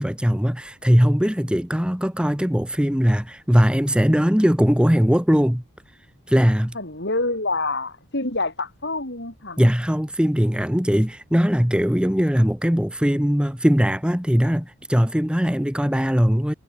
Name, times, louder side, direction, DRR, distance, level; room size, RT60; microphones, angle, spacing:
voice 1, 0.0-5.6 6.3-6.8 9.6-16.5, equal, 5° right, 1.1 m, -20 dB
voice 2, 6.7-9.6, left 2 dB, 50° left, 4.3 m, -27 dB
head